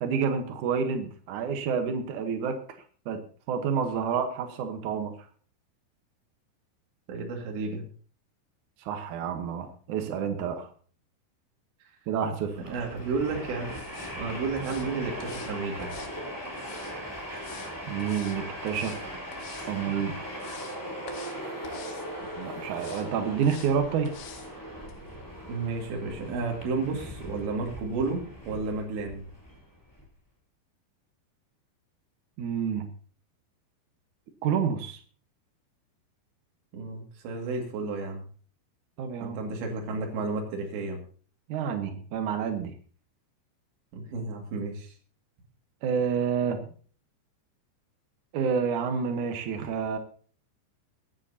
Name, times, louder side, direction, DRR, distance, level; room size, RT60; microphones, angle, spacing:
voice 1, 0.0-2.6 3.0-3.2 3.5-5.1 8.8-10.7 12.1-12.6 17.9-19.0 19.7-20.2 22.2-24.1 32.4-32.9 34.4-35.0 39.0-39.4 41.5-42.7 45.8-46.6 48.3-50.0, right 6 dB, 90° right, 6 dB, 1.7 m, -29 dB
voice 2, 7.1-7.9 11.8-11.9 12.7-13.7 14.2-15.9 25.5-29.2 36.7-38.2 39.2-41.0 43.9-44.9, right 3 dB, 70° right, 1 dB, 4.4 m, -32 dB
Train, 12.4-30.0, equal, 5° left, 2.4 m, -39 dB
sound 1, 13.7-14.1 14.6-14.9 15.2-15.5 15.8-17.0 17.4-17.7 18.0-18.4 18.7-19.0 19.3-19.7 20.1-20.8 21.1-21.4 21.6-22.1 22.7-23.1 23.4-23.7 24.1-24.5 24.9-25.0, left 8 dB, 85° left, 4.0 m, -47 dB
22.5 x 10.0 x 2.8 m, 0.43 s
omnidirectional pair, 5.4 m